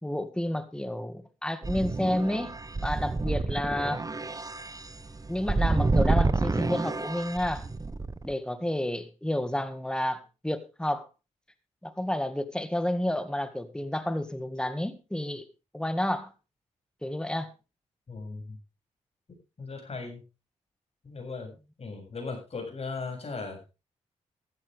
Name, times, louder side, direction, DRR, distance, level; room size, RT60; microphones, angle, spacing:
voice 1, 0.0-4.0 5.3-7.7 8.2-11.1 11.8-15.4 15.7-16.3 17.0-17.5, left 1 dB, 5° left, 11 dB, 1.9 m, -30 dB
sound 1, 1.6-8.3, right 3 dB, 25° right, 1.1 m, -29 dB
voice 2, 18.1-18.6 19.6-20.2 21.0-23.6, left 4 dB, 50° left, 2 dB, 7.4 m, -38 dB
14.5 x 13.5 x 3.5 m, 0.30 s
cardioid pair, 55°, 13 cm